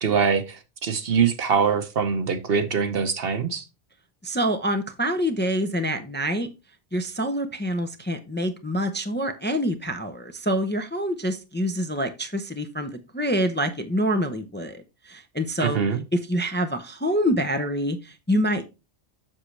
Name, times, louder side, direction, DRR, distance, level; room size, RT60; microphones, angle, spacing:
voice 1, 0.0-3.6 15.6-16.0, right 6 dB, 60° right, 1.1 m, -23 dB
voice 2, 4.2-6.5 6.9-15.8 16.1-18.6, equal, 10° left, 0.6 m, -26 dB
7.5 x 6.5 x 3.2 m
omnidirectional pair, 1.1 m